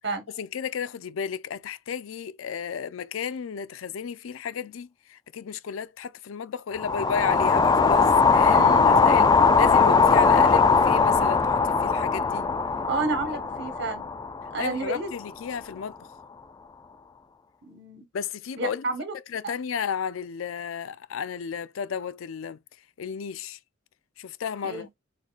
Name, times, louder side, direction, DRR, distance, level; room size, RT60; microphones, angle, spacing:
voice 1, 0.1-12.5 13.2-13.4 14.6-16.1 18.1-18.9 19.3-22.6 23.0-23.6 24.2-24.9, left 7 dB, 90° left, 0.4 m, -33 dB
sound 1, 6.8-15.0, left 5 dB, 20° left, 0.3 m, -20 dB
voice 2, 8.4-8.9 12.9-14.1 14.5-15.1 17.6-18.1 18.6-19.1 24.6-24.9, right 3 dB, 60° right, 1.3 m, -30 dB
6.3 x 3.3 x 2.4 m
head